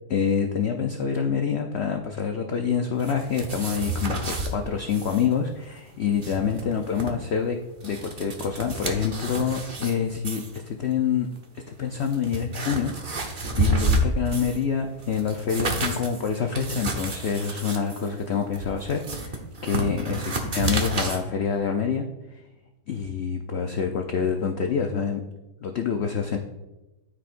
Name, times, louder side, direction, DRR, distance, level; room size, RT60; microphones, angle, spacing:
voice 1, 0.1-7.6 7.8-11.3 11.7-22.1 22.9-25.2 25.6-26.4, left 7 dB, 80° left, 4 dB, 0.5 m, -27 dB
sound 1, 3.0-4.5 4.9-5.3 5.5-5.6 6.0-7.1 7.6-9.9 10.2-10.6 11.4-11.5 11.9-14.6 15.0-21.2, right 2 dB, 35° right, 0.9 m, -30 dB
13.0 x 5.0 x 2.5 m, 1.1 s
omnidirectional pair, 1.8 m